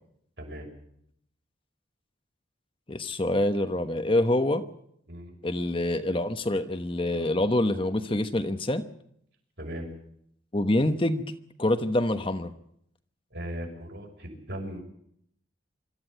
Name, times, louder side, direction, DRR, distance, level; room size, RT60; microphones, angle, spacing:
voice 1, 0.4-0.7 5.1-5.3 9.6-9.9 13.3-14.8, equal, 65° right, 1 dB, 6.4 m, -37 dB
voice 2, 2.9-4.6 5.4-8.8 10.5-11.2 11.6-12.5, left 1 dB, 30° left, 8 dB, 1.1 m, -26 dB
24.5 x 13.5 x 9.1 m, 0.71 s
head